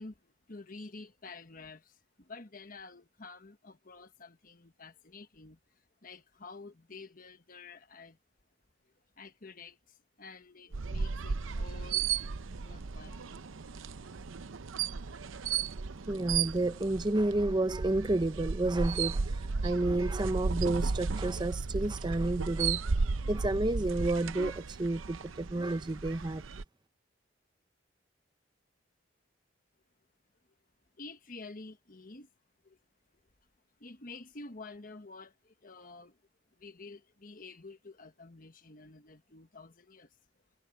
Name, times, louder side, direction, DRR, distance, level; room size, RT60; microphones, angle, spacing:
voice 1, 0.0-8.2 8.8-12.1 12.5-13.3 31.0-32.3 32.6-32.8 33.8-36.2 36.6-40.2, left 3 dB, 45° left, 1.3 m, -50 dB
sound 1, 10.7-26.6, right 5 dB, 90° right, 0.7 m, -34 dB
voice 2, 16.1-22.8 23.3-26.4, right 2 dB, 25° right, 0.6 m, -30 dB
head